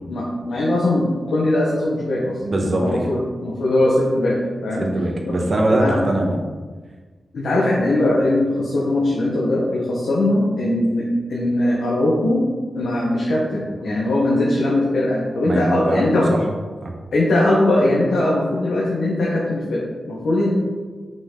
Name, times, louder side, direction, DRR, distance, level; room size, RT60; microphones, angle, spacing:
voice 1, 0.1-4.9 5.3-5.4 5.8-6.0 7.3-12.5 12.7-16.4 17.1-20.5, left 1 dB, 80° left, -5 dB, 1.4 m, -20 dB
voice 2, 2.4-3.1 4.8-6.4 15.4-16.4 16.8-16.9, right 1 dB, 45° right, 1 dB, 1.2 m, -21 dB
7.8 x 5.7 x 3.9 m, 1.4 s
wide cardioid pair, 135°, 0 cm